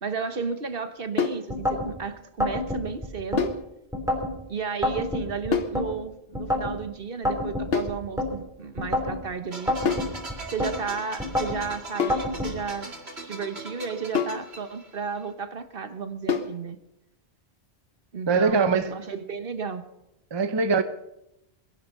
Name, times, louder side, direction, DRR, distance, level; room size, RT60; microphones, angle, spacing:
voice 1, 0.0-3.5 4.5-9.8 10.4-12.9 13.2-16.8 18.1-19.8, right 5 dB, 60° right, 1.4 m, -33 dB
sound 1, 1.2-1.5 3.4-3.7 5.5-5.8 7.7-8.0 9.9-10.2 12.0-12.3 14.1-14.5 16.3-16.6, left 6 dB, 70° left, 1.3 m, -26 dB
sound 2, 1.5-1.9 2.4-3.5 3.9-4.3 4.8-5.9 6.3-6.8 7.3-8.3 8.8-9.2 9.7-10.7 11.2-11.6 12.1-12.5, left 1 dB, 5° right, 3.6 m, -27 dB
sound 3, 9.5-15.2, right 2 dB, 80° right, 2.5 m, -40 dB
voice 2, 18.3-18.9 20.3-20.8, right 4 dB, 25° right, 0.8 m, -22 dB
22.5 x 11.0 x 5.5 m
omnidirectional pair, 1.1 m